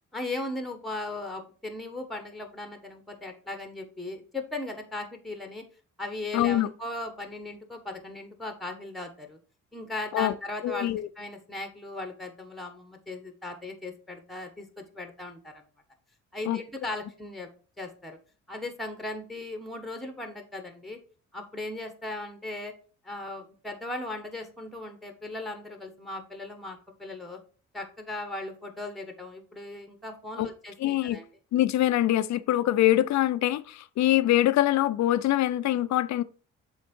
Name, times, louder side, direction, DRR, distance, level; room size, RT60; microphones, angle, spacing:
voice 1, 0.1-5.6 6.0-9.4 9.7-10.9 11.2-15.6 16.3-17.5 17.8-18.2 18.5-21.0 21.3-22.7 23.0-27.4 27.7-31.3, left 2 dB, ahead, 1.3 m, -37 dB
voice 2, 6.3-6.7 10.1-10.3 10.6-11.1 16.5-16.6 30.4-30.5 30.8-31.2 31.5-36.2, left 14 dB, 65° left, 0.5 m, -24 dB
7.3 x 3.6 x 4.4 m
cardioid pair, 90°, 30 cm